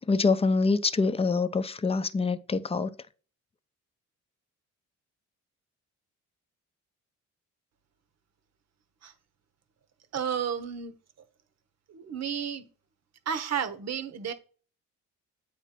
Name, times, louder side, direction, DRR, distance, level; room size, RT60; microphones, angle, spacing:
voice 1, 0.1-2.9, left 4 dB, 20° left, 0.6 m, -25 dB
voice 2, 10.1-10.9 11.9-12.7 13.3-14.3, right 8 dB, 60° right, 1.2 m, -32 dB
8.0 x 3.1 x 5.8 m
cardioid pair, 90°, 30 cm